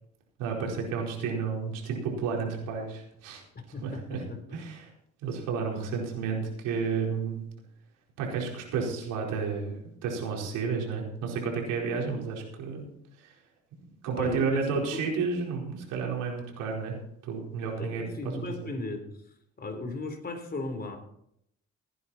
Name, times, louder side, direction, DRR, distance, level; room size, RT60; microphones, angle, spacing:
voice 1, 0.4-3.4 3.8-4.2 4.5-4.9 5.2-7.4 8.2-9.8 10.0-12.9 13.2-13.3 14.0-17.0 17.2-18.7, right 5 dB, 90° right, -1 dB, 4.6 m, -31 dB
voice 2, 3.6-4.6 14.1-15.0 17.6-19.2 19.6-21.0, left 3 dB, 30° left, 5 dB, 3.8 m, -36 dB
17.5 x 10.0 x 4.3 m, 0.71 s
supercardioid pair, 80°, 30 cm